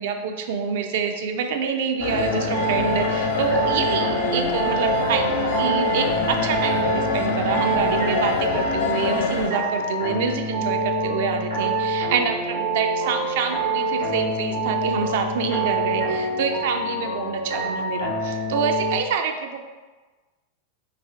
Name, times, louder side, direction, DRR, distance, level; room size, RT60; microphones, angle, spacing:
voice 1, 0.0-19.6, right 6 dB, 55° right, 5 dB, 0.4 m, -26 dB
sound 1, 2.0-9.5, left 4 dB, 55° left, 0.3 m, -26 dB
sound 2, 2.1-19.0, right 2 dB, 80° right, 0.9 m, -26 dB
3.3 x 2.7 x 3.4 m, 1.3 s
figure-of-eight pair, 90°, 0 cm